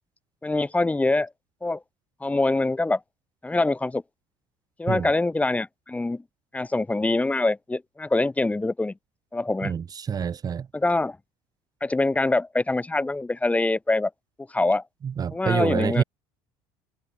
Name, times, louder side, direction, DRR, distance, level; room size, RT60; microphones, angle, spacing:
voice 1, 0.4-1.3 1.6-1.8 2.2-3.0 3.4-4.0 4.8-6.2 6.5-8.9 9.3-9.7 10.7-11.2 11.8-14.1 14.5-14.8 15.3-16.0, left 2 dB, 10° left, 2.6 m, -24 dB
voice 2, 9.6-10.7 15.0-16.0, right 7 dB, 35° right, 1.9 m, -27 dB
supercardioid pair, 95°, 11 cm